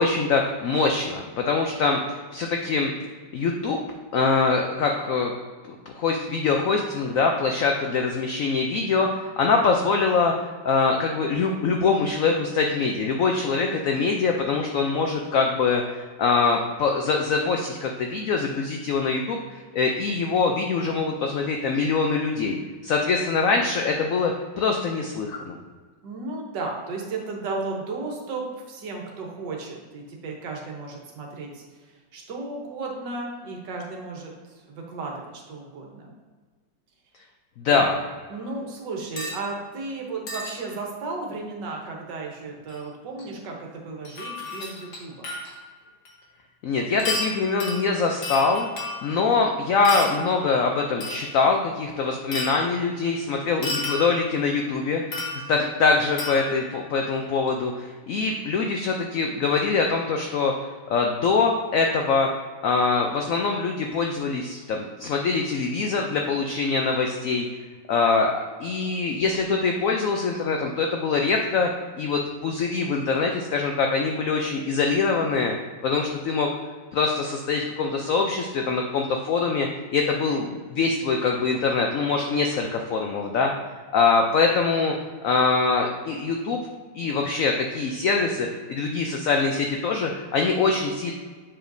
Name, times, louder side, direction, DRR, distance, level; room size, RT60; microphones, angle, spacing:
voice 1, 0.0-2.9 3.3-3.8 4.1-5.3 5.9-10.3 10.6-25.6 37.6-38.0 46.6-48.7 49.0-60.5 60.9-62.3 62.6-67.5 67.9-68.3 68.6-71.7 72.0-75.5 75.8-76.5 76.9-83.5 83.9-84.9 85.2-86.6 86.9-91.1, left 4 dB, 80° left, 2 dB, 0.7 m, -23 dB
voice 2, 26.0-36.1 37.7-37.9 38.3-45.3, right 3 dB, 75° right, -1 dB, 1.6 m, -34 dB
sound 1, 39.2-39.4 40.3-40.5 42.7-42.8 43.2-43.3 44.1-45.6 46.1-46.2 47.0-49.3 49.8-50.3 51.0-51.4 52.3-52.8 53.6-54.4 55.1-55.7 56.2-56.7 57.5-57.6, left 2 dB, 50° left, 1.4 m, -32 dB
7.3 x 5.0 x 2.6 m, 1.5 s
omnidirectional pair, 2.0 m